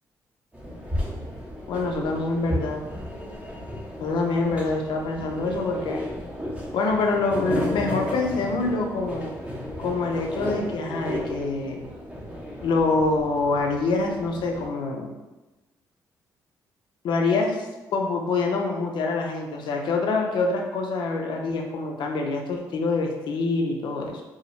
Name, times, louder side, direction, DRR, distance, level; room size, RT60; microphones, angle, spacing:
sound 1, 0.5-14.7, left 1 dB, 15° right, 0.6 m, -34 dB
voice 1, 1.7-2.8 4.0-6.0 6.7-9.3 9.8-11.9 12.6-15.1 17.0-24.2, left 3 dB, 75° left, 2 dB, 0.4 m, -25 dB
2.3 x 2.0 x 2.9 m, 1.1 s
supercardioid pair, 60°, 8 cm